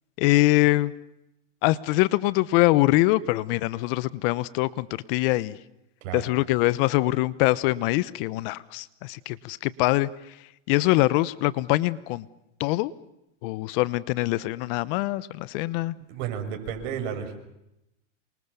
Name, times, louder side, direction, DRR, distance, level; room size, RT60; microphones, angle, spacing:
voice 1, 0.2-0.9 1.6-5.6 6.1-12.3 12.6-12.9 13.4-15.9, left 18 dB, 50° left, 18 dB, 1.0 m, -24 dB
voice 2, 16.1-17.3, right 8 dB, 55° right, 5 dB, 6.7 m, -32 dB
28.0 x 24.5 x 7.0 m, 0.86 s
hypercardioid pair, 125°, 37 cm